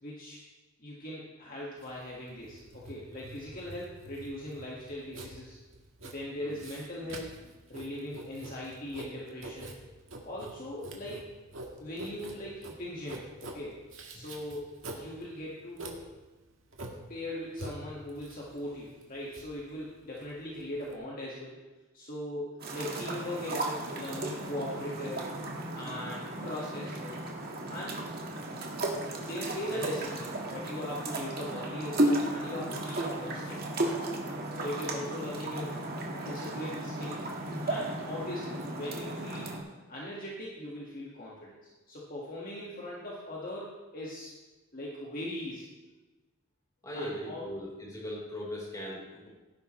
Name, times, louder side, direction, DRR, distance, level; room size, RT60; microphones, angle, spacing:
voice 1, 0.0-0.4 0.8-5.6 6.0-7.3 7.7-9.7 10.2-11.3 11.8-13.8 14.1-16.0 17.1-21.6 21.9-25.4 25.7-27.2 27.7-28.1 29.2-33.6 34.5-35.8 36.2-37.3 37.6-39.6 39.9-41.5 41.9-44.3 44.7-45.7 46.9-47.5, left 1 dB, 40° left, -5 dB, 1.8 m, -40 dB
Writing, 1.8-20.9, right 2 dB, 70° right, 1.7 m, -46 dB
sound 1, 22.6-39.6, right 1 dB, 50° right, 1.8 m, -34 dB
voice 2, 46.8-49.3, equal, 15° left, -5 dB, 4.2 m, -39 dB
17.5 x 10.5 x 3.2 m, 1.2 s
head